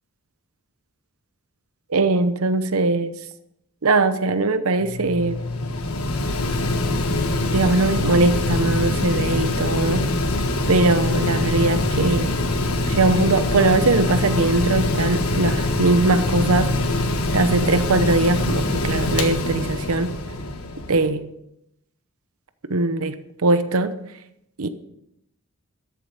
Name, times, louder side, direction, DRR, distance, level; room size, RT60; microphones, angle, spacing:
voice 1, 1.9-3.1 3.8-5.4 7.5-10.1 10.7-12.3 12.9-16.7 17.3-20.1 20.9-21.3 22.7-23.2 23.4-24.0 24.6-24.7, right 2 dB, 80° right, 11 dB, 0.8 m, -20 dB
Mechanical fan, 4.8-21.1, left 2 dB, 85° left, 1.3 m, -23 dB
13.0 x 7.7 x 5.1 m, 0.80 s
head